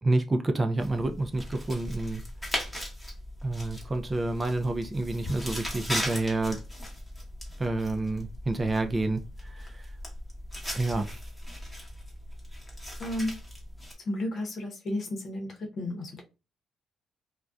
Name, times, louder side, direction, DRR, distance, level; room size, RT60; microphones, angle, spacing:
voice 1, 0.0-2.2 3.4-6.6 7.6-9.8 10.7-11.1, right 2 dB, 25° right, 0.4 m, -29 dB
sound 1, 0.8-13.9, equal, 5° left, 1.0 m, -38 dB
voice 2, 13.0-13.3 14.1-16.2, left 1 dB, 55° left, 0.8 m, -32 dB
2.5 x 2.2 x 2.3 m
cardioid pair, 90°, 0 cm